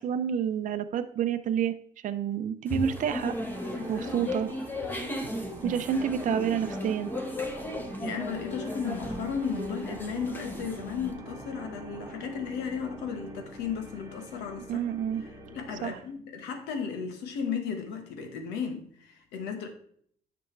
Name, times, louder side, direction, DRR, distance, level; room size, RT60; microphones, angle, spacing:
voice 1, 0.0-1.7 2.0-3.3 3.9-4.5 5.6-7.1 14.7-15.2 15.8-16.0, right 8 dB, 50° right, 0.6 m, -29 dB
sound 1, 2.7-11.1, left 1 dB, 10° left, 1.4 m, -36 dB
sound 2, 2.8-16.1, right 1 dB, 20° right, 1.3 m, -44 dB
voice 2, 3.7-4.2 5.0-5.1 5.7-5.9 8.0-14.8 15.2-19.7, left 6 dB, 85° left, 1.4 m, -35 dB
9.8 x 6.0 x 3.3 m
cardioid pair, 110°, 17 cm